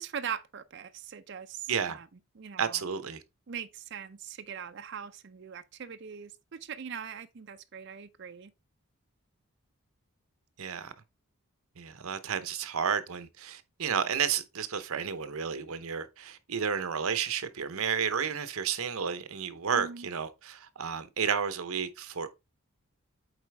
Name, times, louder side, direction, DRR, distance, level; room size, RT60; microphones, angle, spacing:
voice 1, 0.0-2.1 2.4-2.8 3.5-8.5 19.7-20.1, right 7 dB, 50° right, 0.5 m, -41 dB
voice 2, 1.7-2.0 2.6-3.2 10.6-10.9 11.8-22.3, right 7 dB, 75° right, 0.8 m, -32 dB
8.1 x 4.1 x 3.4 m
head